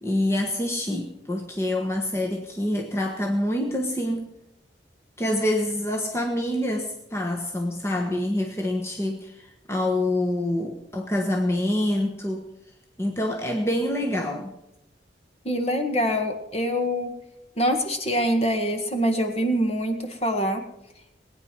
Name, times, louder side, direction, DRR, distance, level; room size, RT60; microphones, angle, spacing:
voice 1, 0.0-4.3 5.2-12.5 13.0-14.5, left 1 dB, 15° left, 1 dB, 1.3 m, -26 dB
voice 2, 15.4-17.1 17.6-20.6, equal, 35° left, 5 dB, 1.7 m, -24 dB
20.0 x 9.5 x 6.1 m, 0.84 s
head